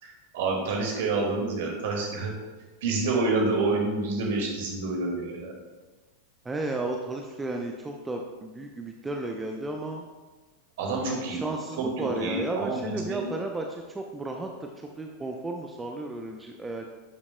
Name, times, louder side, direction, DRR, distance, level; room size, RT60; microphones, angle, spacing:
voice 1, 0.0-2.3 2.8-5.5 10.8-11.4 11.8-13.2, right 3 dB, 55° right, 0 dB, 1.9 m, -28 dB
voice 2, 6.4-10.0 11.3-16.9, right 2 dB, 10° right, 2 dB, 0.6 m, -33 dB
11.0 x 7.0 x 2.2 m, 1.2 s
figure-of-eight pair, 90°, 0 cm